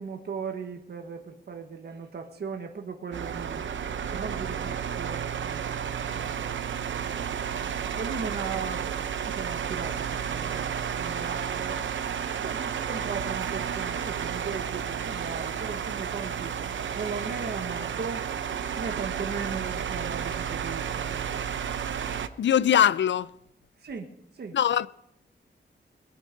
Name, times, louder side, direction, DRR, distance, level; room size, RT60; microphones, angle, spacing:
voice 1, 0.0-3.6 4.1-7.4 8.0-11.9 12.3-16.6 16.9-18.2 18.8-21.8 22.5-22.7 23.8-24.6, right 5 dB, 60° right, 1.4 m, -38 dB
sound 1, 3.1-22.3, right 8 dB, 80° right, 0.8 m, -32 dB
voice 2, 22.4-23.3 24.5-24.9, left 9 dB, 70° left, 0.5 m, -21 dB
21.0 x 9.3 x 5.2 m
wide cardioid pair, 170°, 19 cm